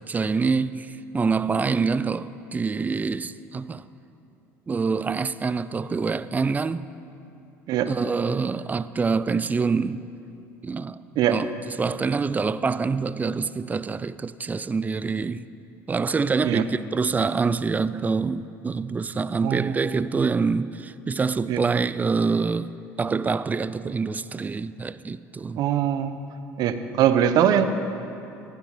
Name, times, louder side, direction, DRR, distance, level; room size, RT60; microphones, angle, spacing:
voice 1, 0.0-3.9 4.7-6.8 7.8-10.0 10.6-15.4 15.9-25.6, right 4 dB, 20° right, 0.4 m, -26 dB
voice 2, 19.4-19.8 21.5-21.6 25.6-26.2 26.6-27.7, right 10 dB, 60° right, 0.9 m, -21 dB
15.5 x 12.0 x 4.9 m
supercardioid pair, 90°, 8 cm